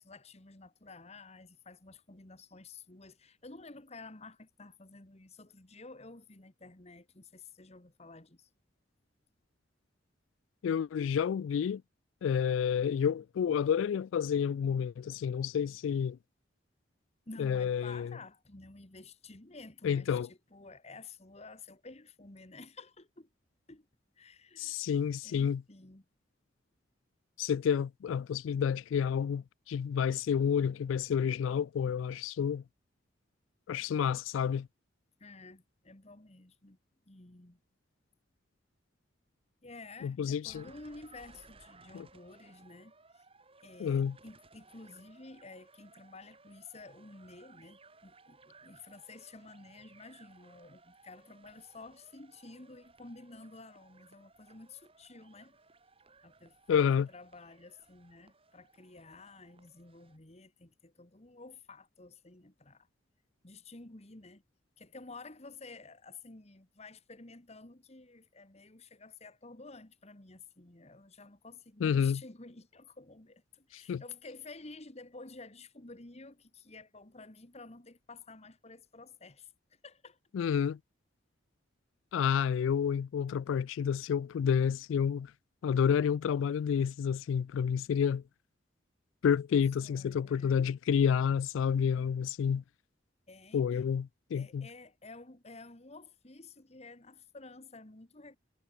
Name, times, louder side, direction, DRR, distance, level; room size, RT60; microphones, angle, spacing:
voice 1, 0.0-8.5 17.3-23.3 23.7-23.9 24.2-24.8 25.2-26.1 35.2-36.8 37.1-37.6 39.6-43.2 43.6-55.6 56.2-62.9 63.4-64.4 64.8-80.2 89.8-90.7 93.3-93.9 94.3-98.4, left 3 dB, 35° left, 1.7 m, -51 dB
voice 2, 10.6-11.8 12.2-16.2 17.4-18.1 19.8-20.3 24.6-25.6 27.4-32.6 33.7-34.7 40.0-40.6 41.9-42.1 43.8-44.1 56.7-57.1 71.8-72.2 73.7-74.0 80.3-80.8 82.1-85.3 85.6-88.2 89.2-92.6 93.5-94.7, left 7 dB, 85° left, 0.3 m, -29 dB
sound 1, 40.4-60.2, right 3 dB, 30° right, 7.5 m, -61 dB
head